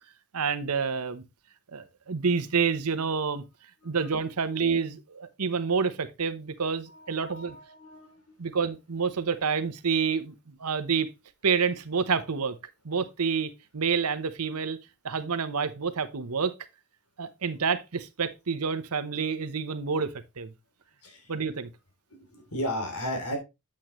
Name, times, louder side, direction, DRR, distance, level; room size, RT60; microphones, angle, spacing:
voice 1, 0.3-1.2 1.7-3.4 3.8-7.6 8.4-11.1 11.4-12.6 12.8-14.8 15.0-16.5 17.2-20.5 21.3-21.7, right 5 dB, 85° right, 0.9 m, -28 dB
voice 2, 6.9-8.4 21.0-21.3 22.3-23.4, equal, 85° left, 3.0 m, -35 dB
8.6 x 7.5 x 3.1 m
head